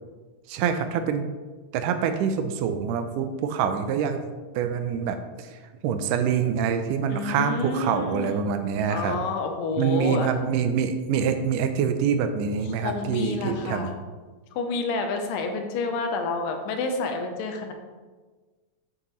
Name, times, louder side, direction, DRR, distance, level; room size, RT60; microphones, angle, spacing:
voice 1, 0.5-1.3 1.7-4.2 4.6-5.6 5.8-9.2 9.8-13.9, right 7 dB, 80° right, 8 dB, 2.2 m, -25 dB
voice 2, 7.1-8.5 8.9-10.3 12.6-13.9 14.6-17.7, left 3 dB, 90° left, 4 dB, 2.5 m, -29 dB
8.6 x 6.5 x 3.1 m, 1.4 s
omnidirectional pair, 3.8 m